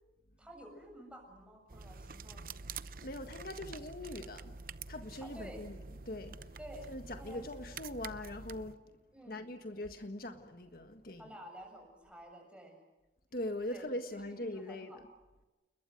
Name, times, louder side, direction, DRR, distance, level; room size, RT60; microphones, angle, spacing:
voice 1, 0.4-2.5 5.2-5.6 6.6-6.9 7.2-7.5 9.1-9.5 11.2-12.8 13.7-13.8 14.4-15.0, equal, 5° right, 7.1 m, -51 dB
sound 1, 1.7-8.7, right 4 dB, 50° right, 0.8 m, -47 dB
voice 2, 3.0-4.5 4.9-6.4 6.9-8.8 9.3-11.4 13.3-15.1, left 1 dB, 55° left, 1.6 m, -42 dB
29.5 x 21.5 x 7.9 m
head